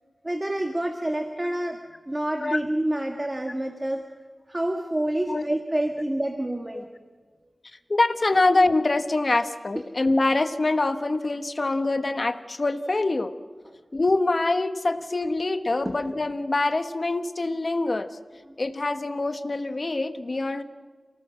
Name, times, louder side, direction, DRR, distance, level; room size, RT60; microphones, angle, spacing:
voice 1, 0.2-1.8 2.1-4.1 4.5-6.9 15.8-15.9, right 1 dB, 25° right, 4 dB, 1.6 m, -27 dB
voice 2, 7.9-13.3 13.9-18.1 18.6-20.6, left 2 dB, 50° left, 10 dB, 1.3 m, -24 dB
28.5 x 18.5 x 6.3 m, 1.5 s
wide cardioid pair, 70°, 0 cm